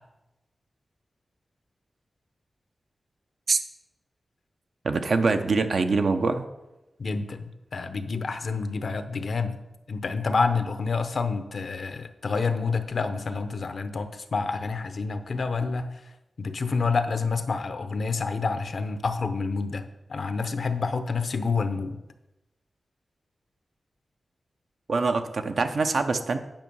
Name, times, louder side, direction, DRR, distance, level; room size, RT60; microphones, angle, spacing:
voice 1, 4.8-6.5 24.9-26.4, right 4 dB, 75° right, 7 dB, 0.7 m, -24 dB
voice 2, 7.0-9.6 9.9-16.0 16.4-22.0, left 4 dB, 70° left, 9 dB, 0.7 m, -28 dB
9.0 x 5.6 x 5.4 m, 0.99 s
wide cardioid pair, 70°, 0 cm